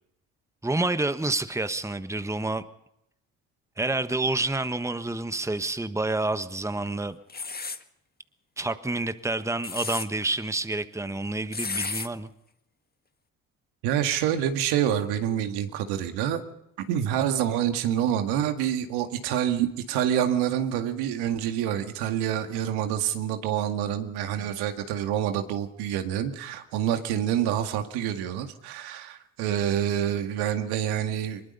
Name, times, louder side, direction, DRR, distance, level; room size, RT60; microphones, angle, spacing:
voice 1, 0.6-2.6 3.8-7.2 8.6-12.3 24.4-24.5, right 2 dB, 5° right, 11 dB, 1.3 m, -28 dB
sound 1, 7.3-7.8 9.4-10.1 11.5-12.1, left 4 dB, 25° left, 1.6 m, -32 dB
voice 2, 13.8-16.4 16.9-31.4, right 10 dB, 75° right, 6 dB, 2.1 m, -27 dB
24.0 x 21.5 x 5.5 m, 0.81 s
hypercardioid pair, 50°, 40 cm